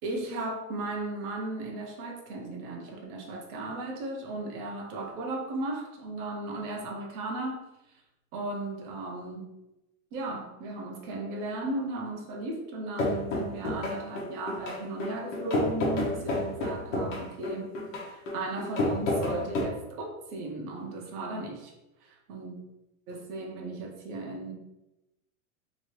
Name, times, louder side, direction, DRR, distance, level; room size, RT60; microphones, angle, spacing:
voice 1, 0.0-7.6 7.9-8.0 8.3-9.5 10.1-17.7 18.0-21.7 22.0-22.6 23.1-24.5, right 2 dB, 40° right, 0 dB, 0.7 m, -36 dB
sound 1, 13.0-19.6, left 2 dB, 55° left, 1.1 m, -30 dB
2.9 x 2.7 x 3.0 m, 0.94 s
supercardioid pair, 170°, 42 cm